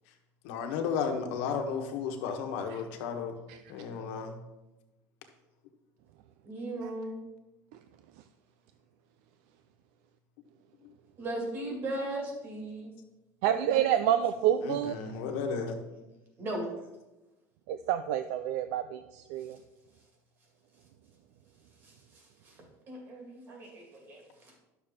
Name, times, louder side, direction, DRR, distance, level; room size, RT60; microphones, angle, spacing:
voice 1, 0.4-3.4 3.7-4.3 14.6-15.8, left 6 dB, 85° left, 4 dB, 1.3 m, -33 dB
voice 2, 6.4-7.2 11.2-12.9 13.5-14.1 16.4-16.7 21.8-22.5 22.9-24.6, right 1 dB, 35° right, 0 dB, 2.2 m, -38 dB
voice 3, 13.4-15.0 17.7-19.6, right 10 dB, 75° right, 10 dB, 0.4 m, -28 dB
11.0 x 6.7 x 3.7 m, 1.0 s
cardioid pair, 165°, 7 cm